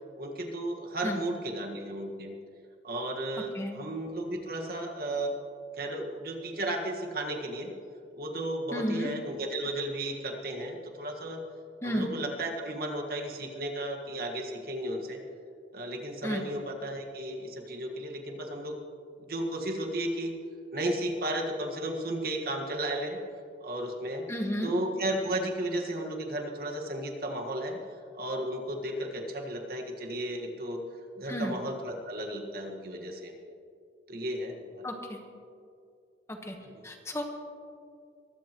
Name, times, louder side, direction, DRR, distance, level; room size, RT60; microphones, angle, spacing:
voice 1, 0.2-2.4 2.8-5.3 5.8-7.7 8.1-11.4 11.8-15.2 15.7-18.8 19.2-20.3 20.7-23.2 23.6-24.3 24.6-27.8 28.2-30.8 31.2-33.3 34.1-34.9 36.7-36.8, right 1 dB, 55° right, 2 dB, 1.6 m, -34 dB
voice 2, 8.7-9.1 11.8-12.1 16.2-16.5 24.3-24.7 31.3-31.6 34.8-35.2 36.3-36.6 36.8-37.2, equal, 15° left, 3 dB, 1.2 m, -32 dB
22.5 x 16.0 x 3.0 m, 2.4 s
head